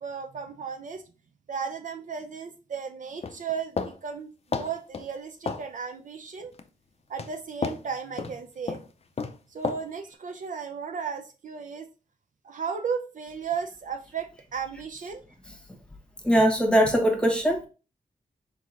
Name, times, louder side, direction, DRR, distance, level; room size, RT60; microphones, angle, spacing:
voice 1, 0.0-1.0 1.5-6.5 7.1-8.8 9.5-11.9 12.4-15.2, right 6 dB, 60° right, 0.5 m, -35 dB
sound 1, 3.2-4.0 4.5-5.1 5.5-5.7 6.4-6.7 7.2-7.3 7.6-7.8 8.2-8.4 8.7-8.9 9.2-9.4 9.6-9.8, left 5 dB, 45° left, 0.5 m, -31 dB
voice 2, 16.2-17.7, equal, 5° left, 1.1 m, -21 dB
4.6 x 3.8 x 2.5 m
cardioid pair, 80°, 15 cm